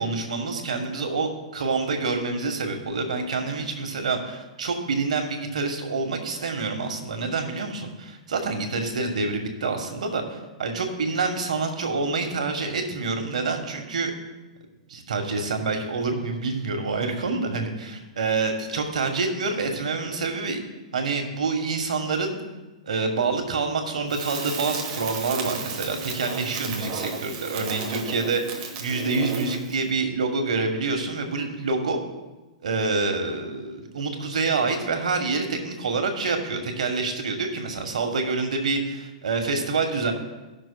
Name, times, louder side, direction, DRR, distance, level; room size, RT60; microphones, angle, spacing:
voice 1, 0.0-14.1 14.9-20.6 20.9-22.4 22.8-32.0 32.6-40.1, right 4 dB, 85° right, 5 dB, 1.3 m, -27 dB
Crackle, 24.1-29.8, right 5 dB, 40° right, 1.2 m, -33 dB
17.0 x 6.0 x 2.2 m, 1.1 s
hypercardioid pair, 135°, 4 cm